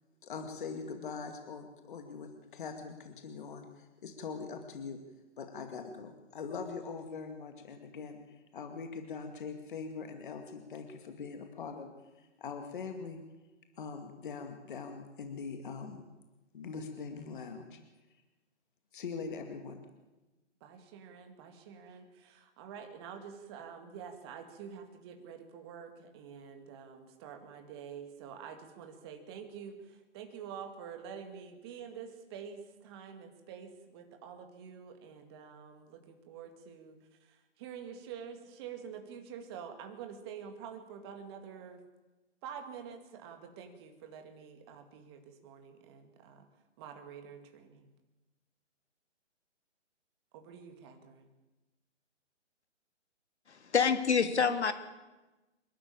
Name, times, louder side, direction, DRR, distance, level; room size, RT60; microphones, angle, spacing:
voice 1, 0.2-5.0 5.4-11.9 12.2-13.2 13.8-16.0 16.5-17.8 18.9-19.8, left 5 dB, 45° left, 5 dB, 2.3 m, -42 dB
voice 2, 20.6-37.0 37.3-41.8 42.4-46.5 46.8-47.9 50.3-51.3, right 7 dB, 20° right, 5 dB, 2.1 m, -47 dB
voice 3, 53.5-54.7, left 6 dB, 65° left, 8 dB, 2.9 m, -27 dB
27.5 x 12.5 x 8.7 m, 1.1 s
hypercardioid pair, 155°, 36 cm